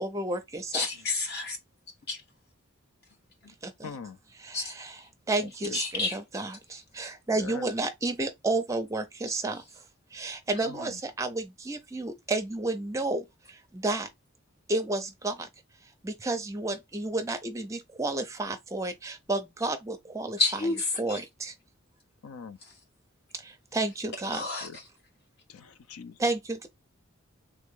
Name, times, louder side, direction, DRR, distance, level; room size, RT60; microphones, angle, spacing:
voice 1, 0.0-0.9 3.6-3.9 4.4-5.0 5.3-9.6 10.1-14.1 14.7-15.5 16.0-20.4 21.0-21.5 23.3-24.4 26.2-26.7, right 2 dB, 15° right, 0.5 m, -31 dB
voice 2, 0.7-1.6 2.1-2.2 3.4-3.5 4.5-4.7 5.7-6.2 20.4-21.2 22.6-22.7 24.3-24.8, left 3 dB, 50° left, 1.3 m, -30 dB
voice 3, 3.8-4.2 5.4-5.8 7.3-7.7 10.6-11.0 22.2-22.6 24.3-24.8 25.5-26.2, left 5 dB, 85° left, 0.5 m, -42 dB
3.4 x 3.0 x 3.6 m
head